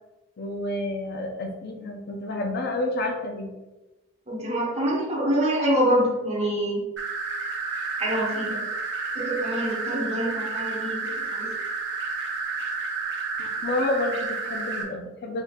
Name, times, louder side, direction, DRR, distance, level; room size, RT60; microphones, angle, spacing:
voice 1, 0.4-3.5 13.4-15.4, left 2 dB, 55° left, 3 dB, 0.5 m, -29 dB
voice 2, 4.3-6.8 8.0-8.7 9.1-11.5, equal, 35° right, -3 dB, 1.0 m, -26 dB
sound 1, 7.0-14.8, right 4 dB, 65° right, 0.7 m, -31 dB
3.9 x 3.6 x 2.3 m, 1.1 s
head